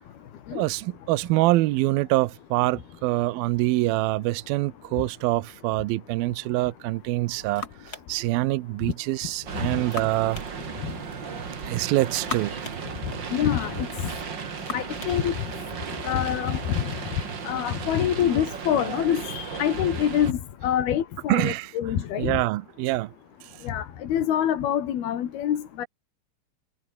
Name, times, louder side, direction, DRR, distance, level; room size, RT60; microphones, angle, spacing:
voice 1, 0.5-10.4 11.7-12.6 21.3-21.7 22.2-23.1, right 18 dB, 80° right, 2.6 m, -25 dB
sound 1, 6.9-17.0, left 4 dB, 30° left, 2.7 m, -43 dB
sound 2, 9.5-20.3, right 6 dB, 35° right, 2.2 m, -35 dB
voice 2, 13.3-14.1 14.7-15.3 16.0-22.4 23.6-25.9, left 10 dB, 80° left, 4.1 m, -26 dB
omnidirectional pair, 4.4 m